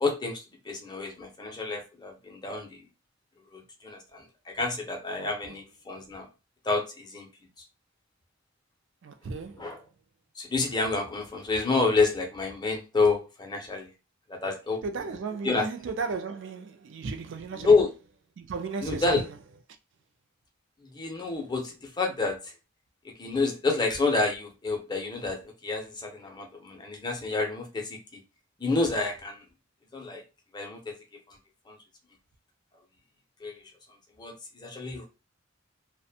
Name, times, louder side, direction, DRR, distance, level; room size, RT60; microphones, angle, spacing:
voice 1, 0.0-2.8 3.5-6.3 6.6-7.3 9.6-9.8 10.4-13.9 14.3-14.8 15.4-15.7 17.6-17.9 18.8-19.2 20.9-22.4 23.2-28.2 28.6-29.4 29.9-30.2 30.5-30.9 31.7-31.8 33.4-33.6 34.2-35.1, left 3 dB, 20° left, 0.5 m, -28 dB
voice 2, 5.2-5.6 9.0-9.7 14.8-17.7 18.4-19.3, right 4 dB, 65° right, 0.4 m, -35 dB
2.4 x 2.1 x 2.6 m
head